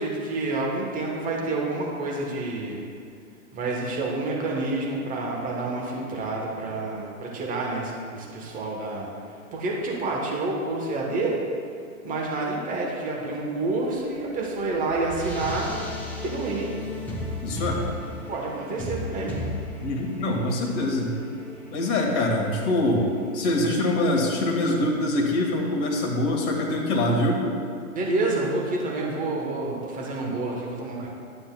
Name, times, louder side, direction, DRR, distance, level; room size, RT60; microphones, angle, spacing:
voice 1, 0.0-2.8 3.5-9.1 9.5-11.4 12.0-15.7 16.2-16.7 18.3-19.3 27.9-31.1, right 2 dB, 20° right, -2 dB, 1.2 m, -28 dB
sound 1, 14.1-24.7, left 1 dB, 5° left, 0.8 m, -36 dB
voice 2, 17.4-17.8 19.8-21.1 21.7-23.1 23.3-27.4, left 1 dB, 30° left, 0 dB, 1.4 m, -24 dB
12.0 x 7.6 x 2.3 m, 2.3 s
hypercardioid pair, 115°, 44 cm